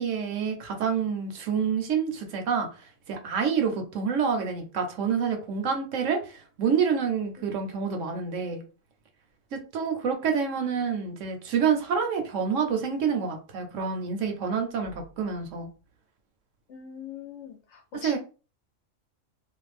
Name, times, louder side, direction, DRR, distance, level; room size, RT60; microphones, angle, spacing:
voice 1, 0.0-2.7 3.1-8.6 9.5-15.7 17.9-18.2, right 6 dB, 70° right, 4 dB, 1.0 m, -27 dB
voice 2, 7.4-7.7 16.7-18.2, left 8 dB, 65° left, 4 dB, 0.8 m, -42 dB
2.5 x 2.2 x 3.1 m, 0.35 s
omnidirectional pair, 1.5 m